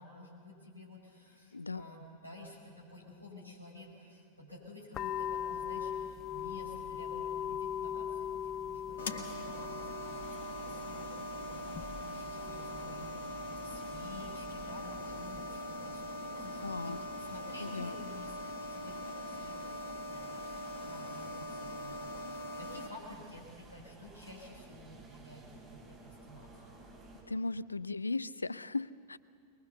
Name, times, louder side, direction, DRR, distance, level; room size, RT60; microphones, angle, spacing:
voice 1, 0.0-26.8, left 1 dB, 90° right, -1 dB, 5.1 m, -52 dB
voice 2, 1.5-1.8 16.6-17.0 17.6-18.0 27.3-29.2, left 3 dB, 80° left, 19 dB, 0.4 m, -37 dB
sound 1, 4.9-15.6, left 9 dB, 30° left, 0.5 m, -41 dB
sound 2, 9.0-22.9, left 1 dB, 60° left, 1.7 m, -42 dB
sound 3, 10.0-27.2, right 3 dB, 25° right, 5.8 m, -55 dB
22.0 x 21.5 x 6.9 m, 2.2 s
figure-of-eight pair, 90°, 0 cm